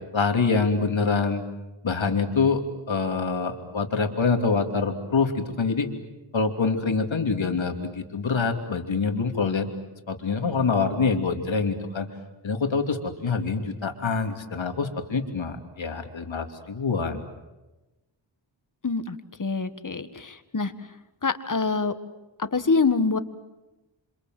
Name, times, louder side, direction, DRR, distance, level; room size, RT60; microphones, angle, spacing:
voice 1, 0.1-1.4 1.8-2.6 2.9-5.9 6.3-9.7 10.1-12.1 12.4-17.2, left 4 dB, 75° left, 5 dB, 3.0 m, -25 dB
voice 2, 18.8-20.7 21.2-21.9 22.4-23.2, left 4 dB, 40° left, 11 dB, 1.7 m, -25 dB
28.0 x 26.5 x 7.8 m, 1.1 s
wide cardioid pair, 75°, 46 cm